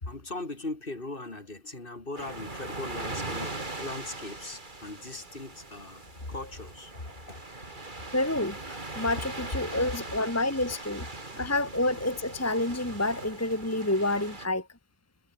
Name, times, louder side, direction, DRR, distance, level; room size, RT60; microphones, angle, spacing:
voice 1, 0.0-7.4 9.7-9.9 11.4-11.5, left 2 dB, 50° left, 3.4 m, -39 dB
sound 1, 2.2-14.5, right 2 dB, 45° right, 3.2 m, -40 dB
voice 2, 8.1-11.1 11.3-14.7, left 2 dB, 15° left, 1.8 m, -28 dB
omnidirectional pair, 1.2 m